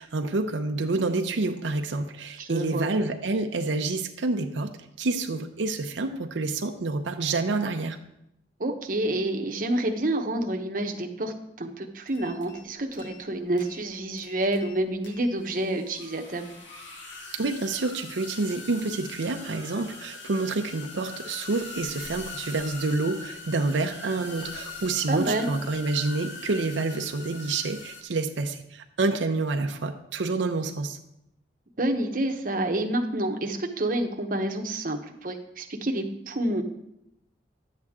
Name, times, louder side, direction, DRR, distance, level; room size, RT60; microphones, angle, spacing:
voice 1, 0.0-4.7 5.0-8.0 17.3-31.0, right 3 dB, 85° right, 5 dB, 0.6 m, -28 dB
voice 2, 2.4-2.9 8.6-11.3 11.6-16.5 25.1-25.5 31.8-36.6, right 1 dB, 45° right, 3 dB, 0.9 m, -28 dB
sound 1, 12.1-12.6 12.9-13.3 13.6-13.8 14.2-14.7 15.0-28.0, left 3 dB, 85° left, 1.6 m, -42 dB
11.0 x 7.9 x 3.6 m, 0.82 s
head